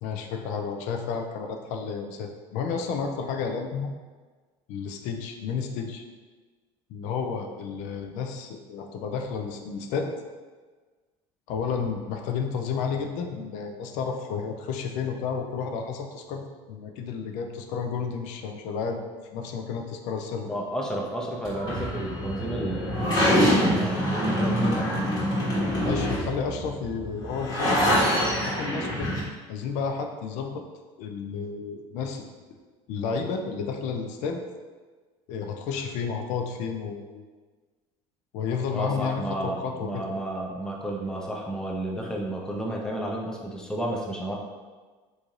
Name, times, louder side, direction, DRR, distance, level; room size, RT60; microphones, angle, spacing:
voice 1, 0.0-3.9 4.7-6.0 6.9-10.1 11.5-19.0 19.3-20.5 25.8-29.1 29.5-30.6 31.0-32.3 32.9-34.4 35.3-37.3 38.3-40.0, left 5 dB, 70° left, 4 dB, 0.4 m, -31 dB
voice 2, 20.5-24.9 38.7-44.4, right 1 dB, 5° left, -1 dB, 0.4 m, -31 dB
sound 1, 21.4-29.2, equal, 30° left, 1.3 m, -25 dB
3.1 x 2.6 x 3.6 m, 1.4 s
cardioid pair, 135°, 13 cm